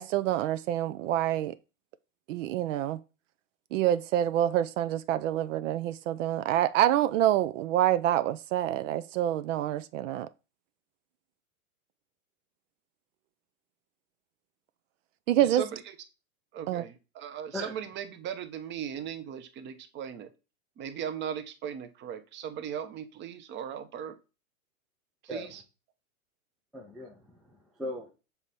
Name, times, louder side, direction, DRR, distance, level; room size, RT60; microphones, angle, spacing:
voice 1, 0.0-1.5 2.3-3.0 3.7-10.3 15.3-15.6 16.7-16.9, right 12 dB, 60° right, 0.5 m, -27 dB
voice 2, 15.4-15.8 16.5-20.3 20.8-24.1 25.3-25.5, right 9 dB, 25° right, 0.7 m, -38 dB
voice 3, 26.7-28.1, left 1 dB, ahead, 0.3 m, -39 dB
7.0 x 3.3 x 4.1 m
hypercardioid pair, 125°, 43 cm